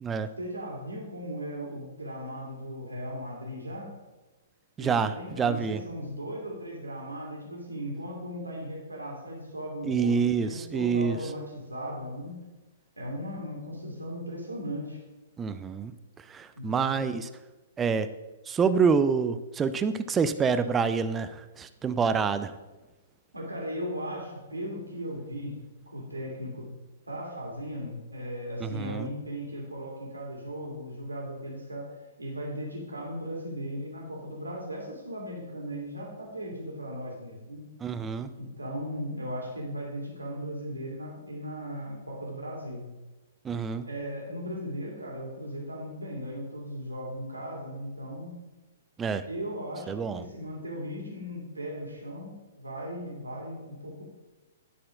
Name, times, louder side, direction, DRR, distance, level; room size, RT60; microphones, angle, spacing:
voice 1, 0.4-3.9 4.8-12.4 13.0-15.0 16.6-16.9 23.3-25.6 25.9-26.7 27.1-37.6 38.4-42.9 43.9-48.4 49.2-54.0, equal, 80° right, -2 dB, 2.2 m, -37 dB
voice 2, 4.8-5.8 9.9-11.2 15.4-15.9 16.3-17.3 17.8-18.1 18.5-22.5 28.6-29.1 37.8-38.3 43.4-43.8 49.0-49.2 49.9-50.2, right 5 dB, 15° right, 11 dB, 0.4 m, -27 dB
10.5 x 4.3 x 4.9 m, 1.1 s
figure-of-eight pair, 115°, 0 cm